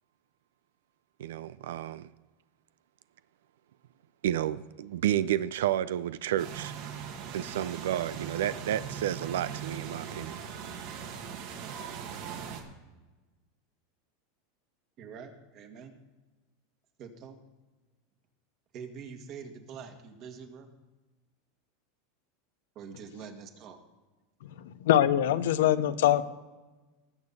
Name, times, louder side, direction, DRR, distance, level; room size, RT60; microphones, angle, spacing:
voice 1, 1.2-2.1 4.2-6.7 7.3-10.4, right 11 dB, 85° right, 0.4 m, -31 dB
sound 1, 6.4-12.6, right 7 dB, 60° right, 1.9 m, -40 dB
voice 2, 15.0-15.9 17.0-17.4 18.7-20.7 22.8-23.8, right 6 dB, 45° right, 1.8 m, -45 dB
voice 3, 24.6-26.3, left 12 dB, 85° left, 0.7 m, -24 dB
19.5 x 7.1 x 4.1 m
supercardioid pair, 135°, 0 cm